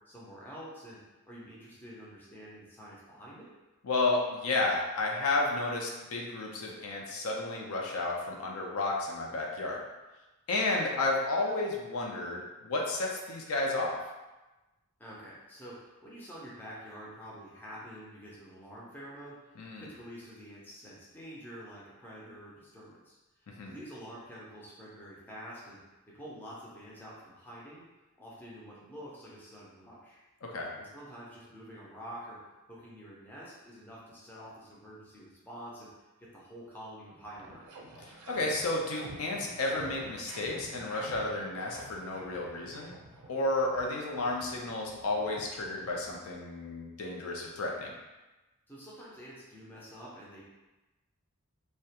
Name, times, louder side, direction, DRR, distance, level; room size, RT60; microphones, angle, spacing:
voice 1, 0.1-1.0 1.2-3.5 15.0-25.8 26.1-27.8 28.2-30.2 30.8-32.4 32.7-35.9 36.2-37.6 48.7-50.4, equal, 10° left, -6 dB, 0.5 m, -47 dB
voice 2, 3.8-9.8 10.5-14.0 19.6-19.8 23.5-23.7 30.4-30.7 38.3-42.9 43.3-47.9, left 2 dB, 75° left, -1 dB, 0.4 m, -32 dB
sound 1, 36.7-36.8 37.0-46.5, right 2 dB, 85° right, 0.4 m, -49 dB
2.2 x 2.1 x 2.7 m, 1.1 s
head